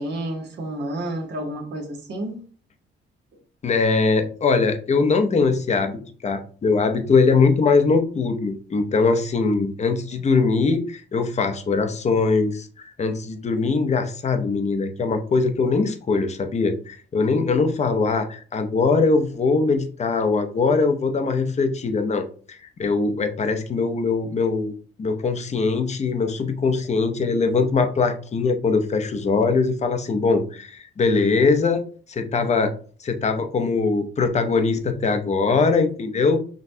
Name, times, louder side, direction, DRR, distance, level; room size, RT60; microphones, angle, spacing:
voice 1, 0.0-2.4, right 1 dB, 60° right, 1.2 m, -30 dB
voice 2, 3.6-6.0 6.2-24.7 25.0-32.7 33.0-36.4, left 4 dB, 35° left, 0.7 m, -21 dB
6.1 x 2.3 x 2.7 m
cardioid pair, 90°, 20 cm